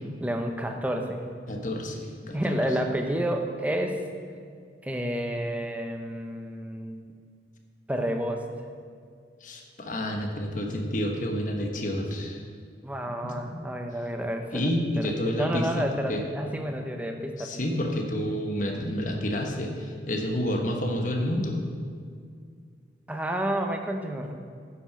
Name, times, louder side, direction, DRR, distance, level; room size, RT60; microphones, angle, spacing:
voice 1, 0.2-1.2 2.3-4.0 4.8-7.0 7.9-8.4 12.8-14.7 15.0-17.5 23.1-24.3, equal, 10° right, 4 dB, 0.6 m, -30 dB
voice 2, 1.5-2.6 9.4-12.4 13.2-13.6 14.5-16.2 16.9-17.0 17.4-21.6, equal, 45° left, 2 dB, 1.0 m, -29 dB
9.6 x 5.7 x 5.8 m, 2.2 s
head